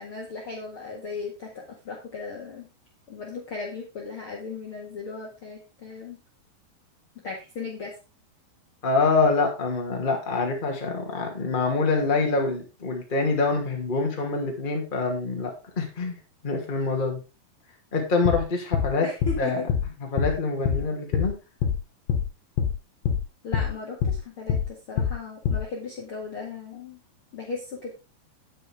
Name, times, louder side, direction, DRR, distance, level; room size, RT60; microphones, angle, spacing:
voice 1, 0.0-1.5 1.8-2.7 3.1-6.2 7.2-7.9 19.0-19.7 23.4-27.0 27.3-27.9, left 4 dB, 45° left, -1 dB, 2.0 m, -36 dB
voice 2, 8.8-16.1 16.4-17.2 17.9-19.1 19.4-19.6 20.1-21.3, left 3 dB, 15° left, 1 dB, 2.0 m, -25 dB
sound 1, 18.2-18.4 18.7-18.9 19.2-19.4 19.7-19.9 20.2-20.3 20.7-20.8 21.1-21.3 21.6-21.8 22.1-22.3 22.6-22.7 23.0-23.2 23.5-23.7 24.0-24.2 24.5-24.7 25.0-25.1 25.5-25.6, left 7 dB, 85° left, 3.2 m, -24 dB
9.9 x 9.4 x 3.6 m, 0.29 s
omnidirectional pair, 4.6 m